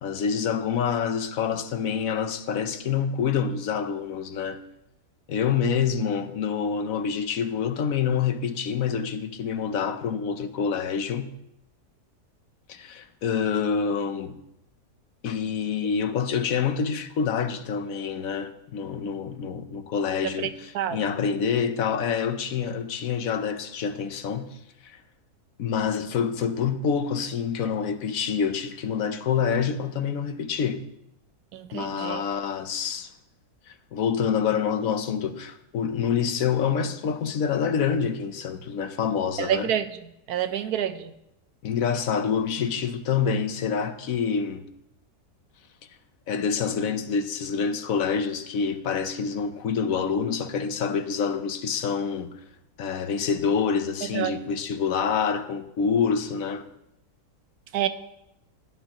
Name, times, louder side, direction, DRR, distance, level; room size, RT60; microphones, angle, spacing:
voice 1, 0.0-4.6 5.3-11.3 12.7-14.4 15.2-24.6 24.8-25.0 25.6-30.8 31.7-33.1 33.7-39.7 41.6-44.6 46.3-52.4 52.8-56.6, left 6 dB, 65° left, 1.1 m, -27 dB
voice 2, 31.5-32.2 39.4-39.8 40.3-41.1 54.1-54.3 57.7-57.9, right 10 dB, 75° right, 1.2 m, -27 dB
16.5 x 11.0 x 3.0 m
omnidirectional pair, 1.7 m